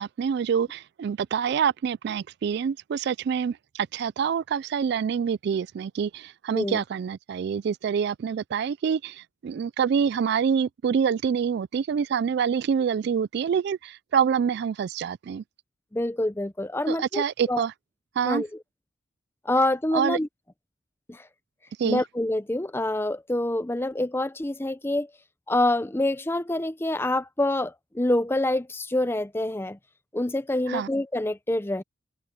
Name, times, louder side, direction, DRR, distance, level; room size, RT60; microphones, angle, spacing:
voice 1, 0.0-15.4 16.9-17.7 18.2-18.4 19.9-20.2 21.8-22.0 30.7-30.9, right 7 dB, 60° right, 0.3 m, -26 dB
voice 2, 15.9-17.6 18.2-18.5 19.4-20.3 21.1-21.3 21.8-25.1 25.5-29.8 30.1-31.8, left 1 dB, 10° left, 0.6 m, -26 dB
head